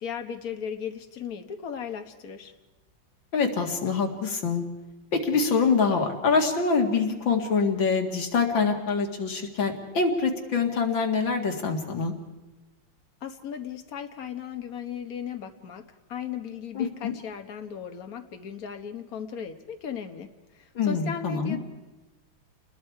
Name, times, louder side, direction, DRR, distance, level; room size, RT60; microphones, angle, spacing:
voice 1, 0.0-2.5 13.2-21.6, left 8 dB, 50° left, 6 dB, 1.7 m, -37 dB
voice 2, 3.3-4.7 5.1-12.1 16.7-17.1 20.8-21.6, left 5 dB, 80° left, 3 dB, 2.8 m, -25 dB
29.0 x 21.0 x 4.7 m, 1.1 s
omnidirectional pair, 2.1 m